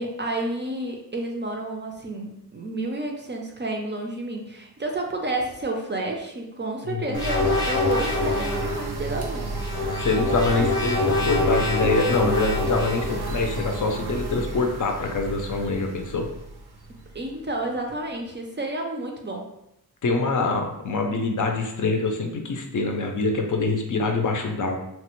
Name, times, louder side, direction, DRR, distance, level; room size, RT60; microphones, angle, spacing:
voice 1, 0.0-9.5 16.9-19.5, right 2 dB, 30° right, 1 dB, 0.4 m, -30 dB
voice 2, 6.8-7.2 10.0-16.3 20.0-24.8, left 3 dB, 55° left, 3 dB, 0.5 m, -25 dB
sound 1, 7.1-8.8 9.5-13.2, left 3 dB, 10° left, 0.7 m, -25 dB
sound 2, 7.1-17.8, right 3 dB, 90° right, 0.6 m, -31 dB
3.0 x 2.1 x 2.9 m, 0.82 s
wide cardioid pair, 105°, 38 cm